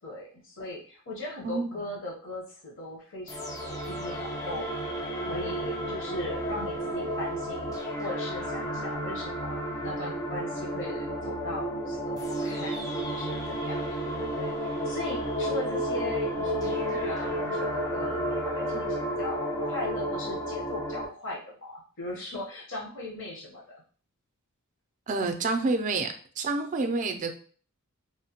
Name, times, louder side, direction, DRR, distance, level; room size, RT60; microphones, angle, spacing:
voice 1, 0.0-4.8 5.1-13.8 14.3-23.8, left 2 dB, 60° left, -4 dB, 0.9 m, -39 dB
voice 2, 1.4-1.8 25.1-27.4, right 3 dB, 35° right, 6 dB, 0.4 m, -29 dB
sound 1, 3.3-21.1, equal, 15° left, 0.5 m, -32 dB
3.1 x 2.1 x 2.8 m, 0.42 s
head